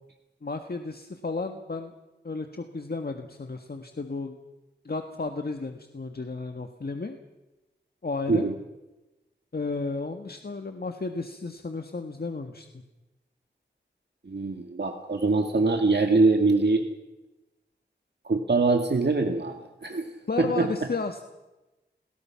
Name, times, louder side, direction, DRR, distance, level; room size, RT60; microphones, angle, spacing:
voice 1, 0.4-1.9 2.2-4.4 4.8-7.2 8.0-8.5 9.5-12.8 20.3-21.3, left 3 dB, 55° left, 6 dB, 1.7 m, -33 dB
voice 2, 14.3-16.8 18.3-19.6 19.8-20.1 20.4-20.7, right 3 dB, 60° right, 4 dB, 2.1 m, -23 dB
29.5 x 20.5 x 5.9 m, 1.0 s
wide cardioid pair, 65°, 19 cm